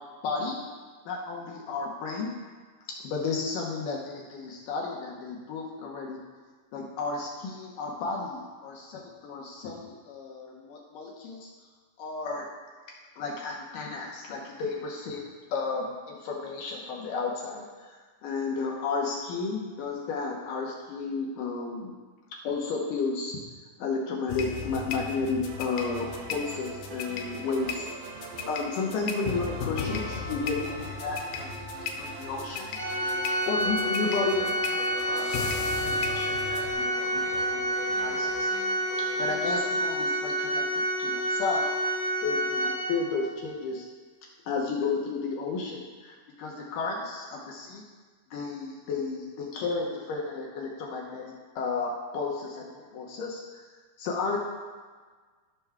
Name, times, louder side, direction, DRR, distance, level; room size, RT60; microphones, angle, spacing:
voice 1, 0.2-0.6 1.1-2.3 3.0-6.2 6.7-11.5 12.0-12.5 13.2-15.2 15.5-18.0 18.2-21.9 22.4-23.4 23.8-27.9 28.4-32.8 33.5-35.3 35.6-38.5 39.2-40.7 41.0-41.6 42.2-43.8 44.5-47.8 48.3-53.6 54.0-54.4, left 4 dB, 70° left, -2 dB, 2.2 m, -33 dB
sound 1, 24.3-36.7, left 6 dB, 90° left, 2.8 m, -36 dB
sound 2, 25.4-40.4, right 4 dB, 75° right, 2.3 m, -43 dB
Organ, 32.7-43.3, equal, 25° right, 0.6 m, -29 dB
15.5 x 6.0 x 2.3 m, 1.5 s
omnidirectional pair, 4.6 m